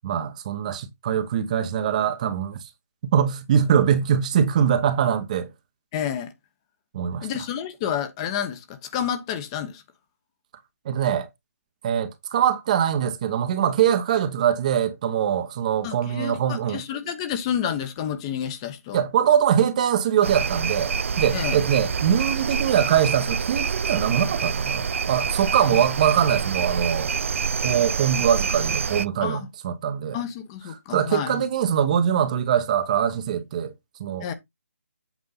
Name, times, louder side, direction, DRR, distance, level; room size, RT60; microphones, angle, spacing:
voice 1, 0.0-2.6 3.1-5.5 6.9-7.3 10.8-11.3 11.8-16.8 18.9-27.1 27.6-30.2 30.9-33.7 34.0-34.3, right 9 dB, 30° right, 1.0 m, -23 dB
voice 2, 5.9-6.3 7.2-9.8 15.8-16.4 16.7-19.0 21.3-21.6 25.7-25.8 29.2-29.5 30.1-31.4 34.2-34.3, left 9 dB, 20° left, 1.0 m, -29 dB
sound 1, 20.2-29.1, right 6 dB, 60° right, 0.5 m, -26 dB
8.2 x 5.2 x 3.9 m
hypercardioid pair, 160°, 8 cm